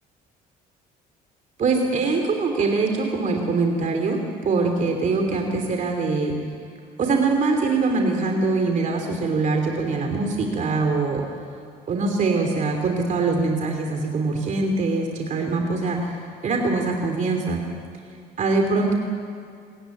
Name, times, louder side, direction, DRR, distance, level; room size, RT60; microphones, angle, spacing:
voice 1, 1.6-6.3 7.0-11.4 11.9-16.2 16.4-17.6 18.4-18.9, right 3 dB, 45° right, 3 dB, 2.9 m, -23 dB
26.0 x 15.0 x 9.2 m, 2.2 s
cardioid pair, 110°, 17 cm